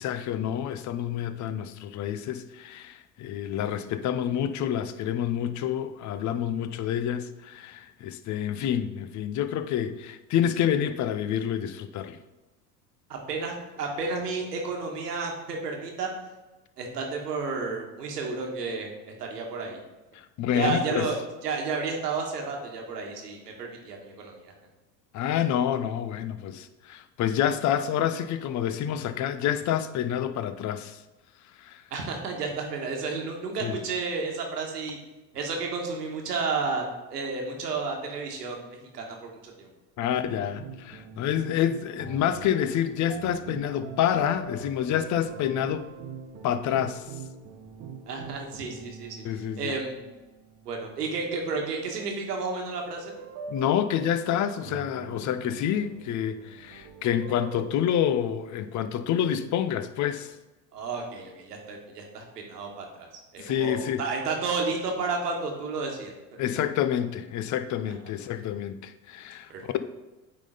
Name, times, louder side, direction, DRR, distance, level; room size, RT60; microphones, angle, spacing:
voice 1, 0.0-12.2 20.1-21.1 25.1-31.0 31.6-31.8 33.6-33.8 40.0-45.9 46.4-47.1 49.2-49.7 53.5-60.3 63.4-64.0 66.4-69.8, left 10 dB, 40° left, 0.6 m, -28 dB
voice 2, 13.1-16.1 16.8-19.8 20.5-24.5 31.9-35.0 35.3-36.8 37.1-39.7 48.1-49.2 49.6-50.0 50.6-53.1 60.7-63.1 63.3-66.1 69.5-69.8, right 4 dB, 85° right, 1.5 m, -32 dB
sound 1, 40.3-51.2 52.8-57.9, right 6 dB, 40° right, 1.1 m, -43 dB
9.0 x 3.8 x 3.9 m
hypercardioid pair, 75°, 46 cm